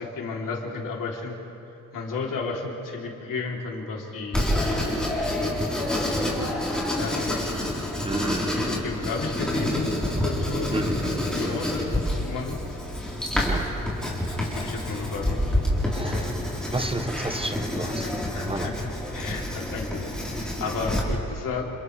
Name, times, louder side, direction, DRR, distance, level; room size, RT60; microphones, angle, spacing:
voice 1, 0.0-1.4 1.9-4.5 5.3-5.5 5.9-6.3 6.9-7.6 8.5-10.9 11.3-11.9 12.2-12.6 14.3-15.4 18.3-18.7 19.1-21.7, left 4 dB, 75° left, -1 dB, 3.4 m, -33 dB
Writing, 4.3-21.0, left 1 dB, ahead, 3.9 m, -28 dB
voice 2, 8.0-8.6 10.7-12.0 13.4-13.7 14.2-15.1 15.8-18.1 18.4-18.8, right 2 dB, 15° right, 7 dB, 0.8 m, -33 dB
29.5 x 28.5 x 3.4 m, 2.9 s
wide cardioid pair, 170°, 33 cm